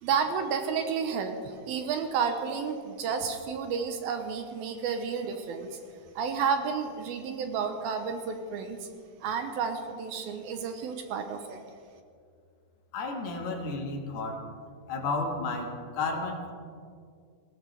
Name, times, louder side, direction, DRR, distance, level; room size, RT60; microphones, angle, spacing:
voice 1, 0.0-5.8 6.2-8.9 9.2-11.6, right 6 dB, 80° right, 6 dB, 2.7 m, -31 dB
voice 2, 12.9-14.4 14.9-16.5, left 3 dB, 90° left, 2 dB, 3.8 m, -32 dB
19.0 x 18.5 x 3.4 m, 2.2 s
omnidirectional pair, 4.4 m